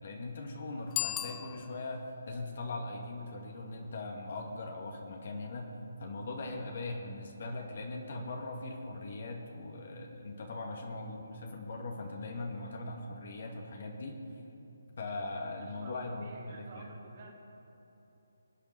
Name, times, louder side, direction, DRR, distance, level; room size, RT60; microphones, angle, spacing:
voice 1, 0.0-5.7 6.0-14.2 15.0-16.9, left 2 dB, 55° left, 2 dB, 2.1 m, -40 dB
Bicycle bell, 0.9-2.1, left 12 dB, 15° left, 0.4 m, -37 dB
voice 2, 15.6-17.3, right 3 dB, 40° right, -2 dB, 2.7 m, -51 dB
23.5 x 9.1 x 6.0 m, 2.9 s
figure-of-eight pair, 150°, 0 cm